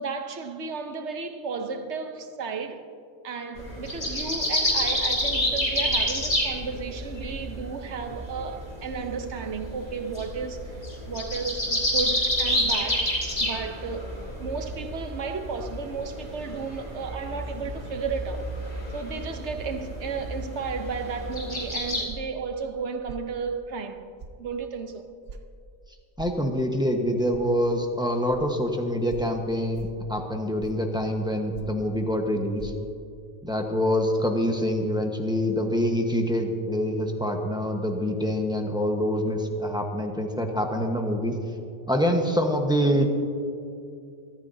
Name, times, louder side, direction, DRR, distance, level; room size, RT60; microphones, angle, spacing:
voice 1, 0.0-2.9 3.2-14.1 14.4-18.5 18.9-24.1 24.4-25.1, right 5 dB, 80° right, 1.2 m, -33 dB
sound 1, 3.6-22.0, equal, 35° left, 2.9 m, -29 dB
sound 2, 22.1-22.4 23.1-23.3 24.2-24.4 25.3-25.4 26.2-26.4 27.3-27.5 28.3-28.4 29.1-29.3 29.7-30.0 30.6-30.9 31.5-31.8 32.6-32.7, right 4 dB, 60° right, 1.0 m, -41 dB
voice 2, 26.2-32.7 33.4-41.4 41.9-43.0, equal, 5° right, 1.2 m, -25 dB
23.0 x 13.5 x 2.8 m
omnidirectional pair, 1.1 m